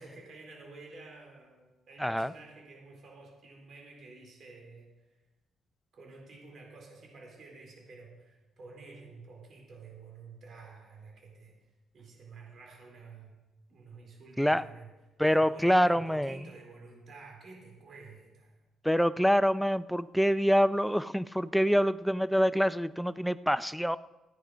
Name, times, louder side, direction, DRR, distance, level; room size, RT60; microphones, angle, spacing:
voice 1, 0.0-5.2 5.9-11.6 11.9-13.4 13.7-14.9 15.2-18.6, right 3 dB, 60° right, 1 dB, 4.0 m, -50 dB
voice 2, 15.2-16.4 18.8-24.0, equal, ahead, 14 dB, 0.5 m, -26 dB
16.0 x 9.7 x 5.1 m, 1.1 s
cardioid pair, 90°, 0 cm